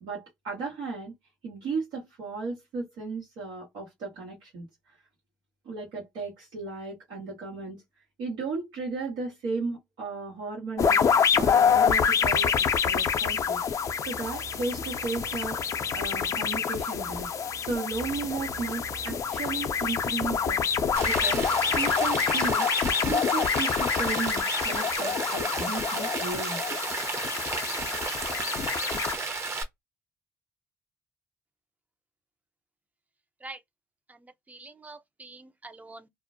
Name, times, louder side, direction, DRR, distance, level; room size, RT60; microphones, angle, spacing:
voice 1, 0.0-1.1 1.4-4.7 5.6-7.8 8.2-11.0 11.3-12.5 12.8-13.6 14.0-15.6 15.9-17.3 17.6-20.6 21.0-21.5 21.8-22.7 23.0-26.6, right 4 dB, 80° right, 1.1 m, -35 dB
sound 1, 10.8-29.2, left 7 dB, 50° left, 0.5 m, -27 dB
sound 2, 12.3-22.6, right 6 dB, 60° right, 0.6 m, -47 dB
Rain, 21.0-29.6, right 3 dB, 40° right, 0.9 m, -33 dB
voice 2, 34.1-36.1, right 2 dB, 20° right, 0.6 m, -46 dB
2.4 x 2.1 x 2.5 m
supercardioid pair, 60°, 7 cm